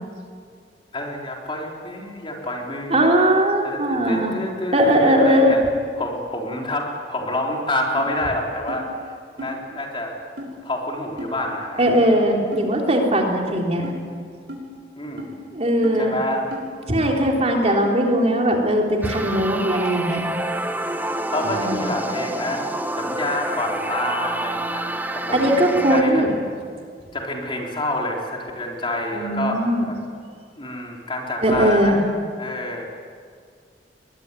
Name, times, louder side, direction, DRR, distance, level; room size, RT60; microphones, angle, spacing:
voice 1, 0.9-3.0 3.6-5.6 6.0-10.1 10.6-11.9 15.0-15.4 16.0-16.5 17.7-17.8 21.0-22.7 22.9-24.8 25.1-25.5 25.9-26.2 27.1-30.0 30.6-32.0 32.4-32.8, left 1 dB, 30° left, 0 dB, 3.9 m, -28 dB
voice 2, 2.9-4.4 4.7-5.6 11.8-13.9 15.5-16.1 16.9-20.3 21.4-21.8 25.3-26.3 29.1-29.8 31.4-32.0, equal, 40° right, 0 dB, 3.6 m, -19 dB
sound 1, 8.0-8.1 8.7-8.8 9.4-9.5 10.4-10.5 11.2-11.3 11.9-12.0 12.5-12.7 13.2-13.3 13.8-14.0 14.5-14.6 15.2-15.3 15.8-16.0 16.5-16.7 17.2-17.3 17.8-17.9, equal, 75° right, 6.3 m, -34 dB
sound 2, 19.0-26.0, right 1 dB, 10° right, 1.0 m, -28 dB
22.0 x 21.5 x 9.8 m, 2.1 s
head